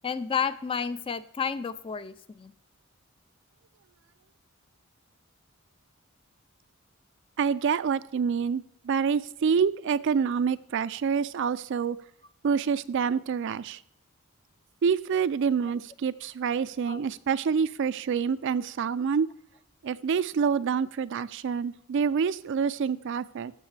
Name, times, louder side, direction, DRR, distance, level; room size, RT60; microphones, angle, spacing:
voice 1, 0.0-2.5 16.9-17.0, left 6 dB, 25° left, 14 dB, 0.3 m, -31 dB
voice 2, 7.4-12.0 12.4-13.8 14.8-19.3 19.8-23.5, right 6 dB, 55° right, 16 dB, 0.3 m, -27 dB
13.5 x 6.4 x 3.3 m, 0.71 s
head